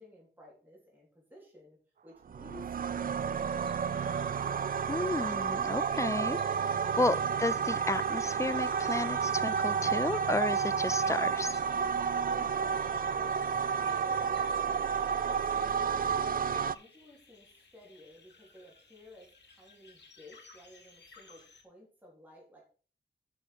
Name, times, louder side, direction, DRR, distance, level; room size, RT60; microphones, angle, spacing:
voice 1, 0.0-4.2 12.0-22.6, equal, 10° right, -4 dB, 3.7 m, -54 dB
sound 1, 2.3-16.8, right 6 dB, 50° right, 0.4 m, -31 dB
sound 2, 3.3-21.6, left 4 dB, 75° left, 2.2 m, -59 dB
voice 2, 4.9-6.4 6.7-11.6, left 2 dB, 15° left, 16 dB, 0.4 m, -32 dB
7.7 x 6.3 x 5.2 m, 0.40 s
wide cardioid pair, 110°, 18 cm